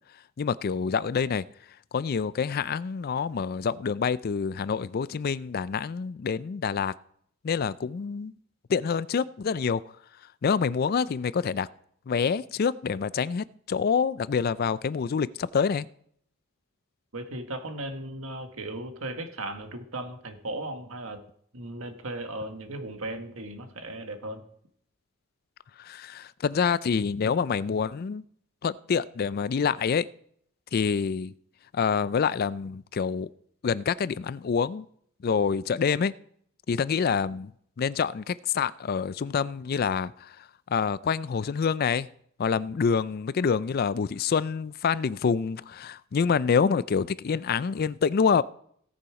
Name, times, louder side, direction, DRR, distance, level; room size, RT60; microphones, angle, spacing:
voice 1, 0.4-1.5 1.9-6.9 7.4-8.3 8.7-9.8 10.4-11.7 12.1-15.9 25.8-28.2 28.6-30.1 30.7-31.3 31.7-33.3 33.6-34.9 35.2-36.1 36.7-37.5 37.8-40.4 40.7-42.1 42.4-48.4, left 6 dB, 45° left, 0.4 m, -26 dB
voice 2, 17.1-21.2 21.5-24.4, right 1 dB, 80° right, 1.7 m, -36 dB
17.5 x 6.9 x 4.8 m
head